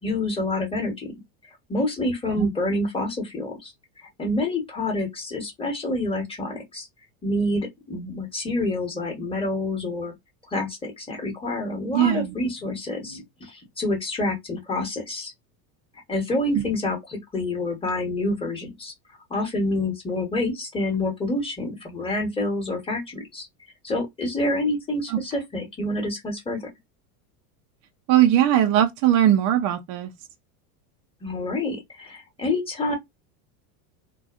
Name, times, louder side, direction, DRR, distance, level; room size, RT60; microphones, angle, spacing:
voice 1, 0.0-1.1 1.7-3.7 4.0-6.9 7.2-10.1 10.5-15.3 16.1-18.9 19.3-23.5 23.8-26.6 31.2-33.0, left 2 dB, 10° left, 1.0 m, -27 dB
voice 2, 11.9-12.3 25.1-25.2 28.1-30.1, right 11 dB, 40° right, 0.4 m, -19 dB
2.7 x 2.2 x 2.4 m
supercardioid pair, 125°, 45 cm